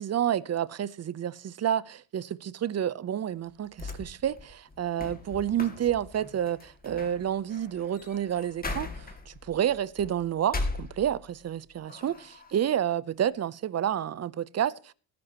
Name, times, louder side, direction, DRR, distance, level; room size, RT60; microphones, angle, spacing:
voice 1, 0.0-14.9, right 10 dB, 35° right, 0.7 m, -29 dB
sound 1, 3.5-11.5 11.9-12.7, left 2 dB, 20° left, 2.2 m, -39 dB
19.0 x 11.0 x 3.0 m
cardioid pair, 105°, 46 cm